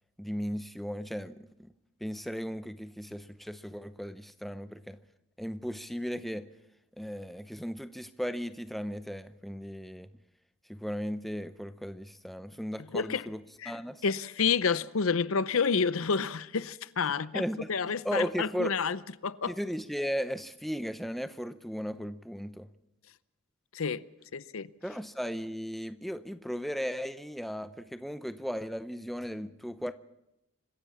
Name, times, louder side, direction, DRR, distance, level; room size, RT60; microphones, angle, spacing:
voice 1, 0.2-1.7 2.0-5.0 5.4-6.5 7.0-10.1 10.7-14.0 17.3-17.7 18.0-18.7 19.5-22.7 24.8-29.9, equal, ahead, 0.7 m, -36 dB
voice 2, 12.9-13.3 13.6-13.7 14.0-17.4 17.7-19.5 23.7-24.0 24.3-24.7, left 5 dB, 75° left, 0.7 m, -29 dB
25.5 x 15.5 x 7.2 m
head